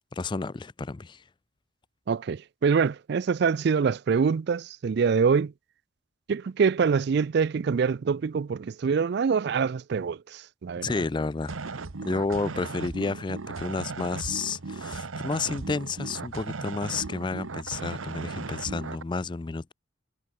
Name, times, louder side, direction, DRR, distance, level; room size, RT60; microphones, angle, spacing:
voice 1, 0.1-1.2 10.8-11.8 12.1-19.7, left 4 dB, 25° left, 0.4 m, -31 dB
voice 2, 2.1-5.5 6.3-10.9, right 5 dB, 55° right, 0.4 m, -25 dB
sound 1, 11.4-19.0, right 3 dB, 90° right, 1.0 m, -37 dB
head